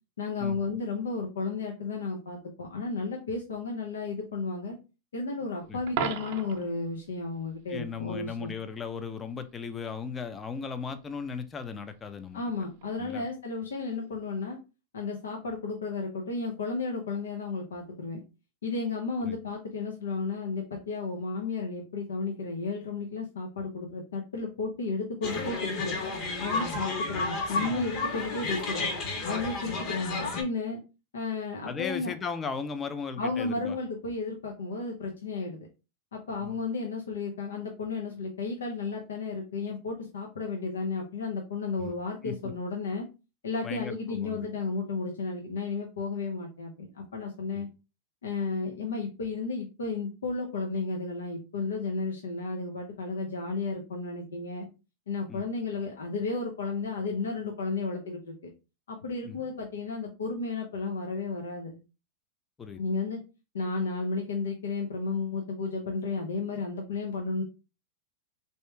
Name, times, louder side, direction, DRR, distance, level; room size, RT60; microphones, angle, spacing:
voice 1, 0.2-4.8 5.1-8.5 12.3-14.6 14.9-18.2 18.6-26.0 26.4-28.9 29.2-30.8 31.1-32.1 33.2-35.7 36.1-43.1 43.4-47.7 48.2-54.7 55.1-58.5 58.9-61.8 62.8-63.2 63.5-67.4, left 3 dB, 85° left, 1 dB, 0.7 m, -33 dB
Coin (dropping), 5.9-6.7 12.8-13.0, right 8 dB, 60° right, 0.6 m, -33 dB
voice 2, 7.7-12.4 13.0-13.3 19.2-19.4 31.6-33.8 36.4-36.6 41.8-41.9 42.2-42.5 43.6-44.5 47.5-47.6 55.3-55.4 59.2-59.4 62.6-62.8, left 5 dB, 25° left, 10 dB, 0.5 m, -37 dB
sound 1, 25.2-30.4, left 3 dB, 50° left, 1.4 m, -32 dB
3.5 x 2.8 x 3.2 m, 0.30 s
hypercardioid pair, 110°, 0 cm